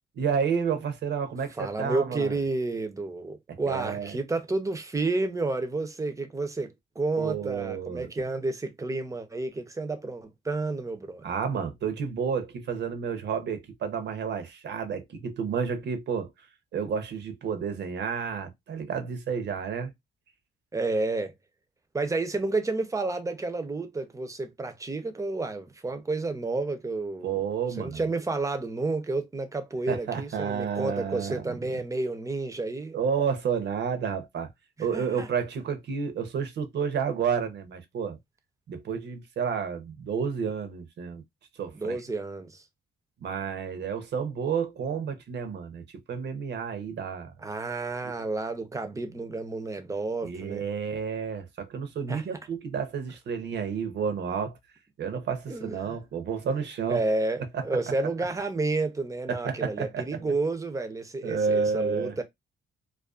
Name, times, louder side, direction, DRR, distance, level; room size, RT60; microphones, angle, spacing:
voice 1, 0.1-2.4 3.5-4.2 7.2-8.1 11.2-16.3 16.7-19.9 27.2-28.0 29.9-31.4 32.9-34.5 34.8-38.2 38.7-41.2 41.6-42.0 43.2-47.3 48.0-48.1 50.2-54.6 55.0-57.0 57.5-57.6 59.3-60.1 61.2-62.1, right 6 dB, 60° right, 0.7 m, -30 dB
voice 2, 1.6-11.2 20.7-21.3 21.9-27.4 27.8-33.0 34.9-35.3 41.7-42.6 47.4-50.6 52.1-52.2 55.5-56.0 56.9-62.2, right 3 dB, 15° right, 0.6 m, -30 dB
2.4 x 2.3 x 2.3 m
cardioid pair, 90°, 20 cm